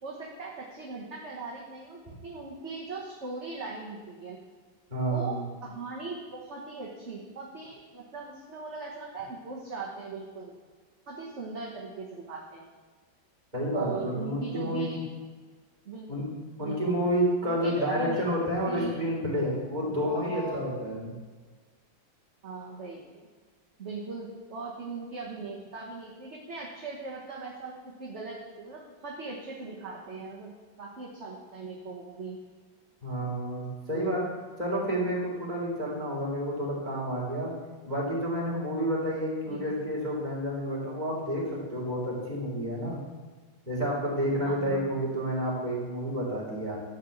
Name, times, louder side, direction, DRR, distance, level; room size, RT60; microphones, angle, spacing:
voice 1, 0.0-4.4 5.1-10.6 11.1-12.6 13.7-15.0 15.8-16.1 16.6-18.3 18.6-19.0 19.9-20.6 21.1-21.2 22.4-23.0 23.8-32.4 33.9-34.2 39.5-39.6 44.4-44.9, right 4 dB, 40° right, -3 dB, 1.5 m, -39 dB
voice 2, 4.9-5.4 13.5-15.0 16.1-16.3 16.6-21.1 33.0-34.2 34.6-37.5 37.9-43.0 43.7-46.8, equal, 20° right, -5 dB, 3.6 m, -30 dB
13.5 x 4.7 x 8.4 m, 1.4 s
omnidirectional pair, 2.2 m